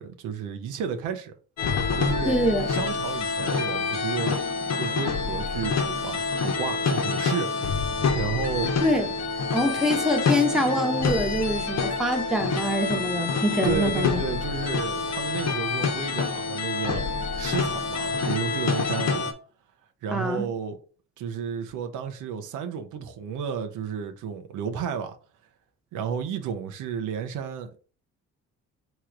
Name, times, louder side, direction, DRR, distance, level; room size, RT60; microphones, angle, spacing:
voice 1, 0.0-1.3 1.9-2.4 2.7-4.4 4.8-7.5 8.1-8.7 13.6-17.0 17.4-19.2 20.0-20.8 21.2-25.1 25.9-27.8, right 7 dB, 85° right, 0.8 m, -32 dB
sound 1, 1.6-19.3, left 4 dB, 60° left, 1.0 m, -27 dB
voice 2, 2.2-2.7 8.8-9.1 9.5-14.2 20.1-20.5, equal, ahead, 1.1 m, -25 dB
3.8 x 3.1 x 4.6 m
cardioid pair, 90°, 30 cm